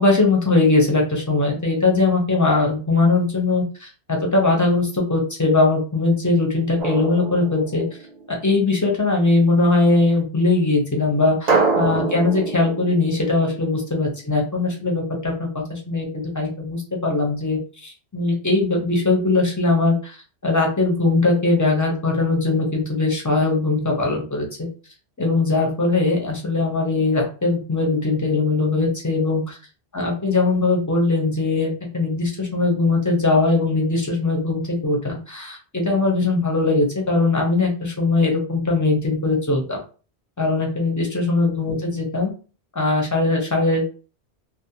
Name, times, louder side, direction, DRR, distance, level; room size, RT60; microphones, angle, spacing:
voice 1, 0.0-7.8 8.3-20.2 20.4-24.5 25.2-29.6 29.9-39.8 40.4-42.3 42.8-43.8, left 3 dB, 20° left, -1 dB, 0.5 m, -20 dB
Drum, 6.8-8.4 11.5-14.2, right 4 dB, 45° right, 0.7 m, -25 dB
2.4 x 2.0 x 2.8 m, 0.36 s
omnidirectional pair, 1.1 m